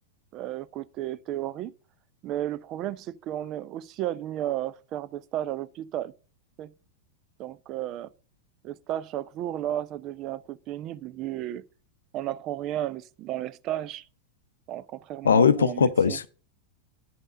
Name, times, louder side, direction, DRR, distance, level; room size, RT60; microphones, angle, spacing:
voice 1, 0.3-1.7 2.2-6.1 6.6-6.7 7.4-8.1 8.6-11.6 12.1-14.0 14.7-16.2, right 12 dB, 35° right, 0.5 m, -33 dB
voice 2, 15.2-16.3, left 6 dB, 70° left, 0.6 m, -20 dB
9.5 x 5.4 x 5.1 m
figure-of-eight pair, 90°, 0 cm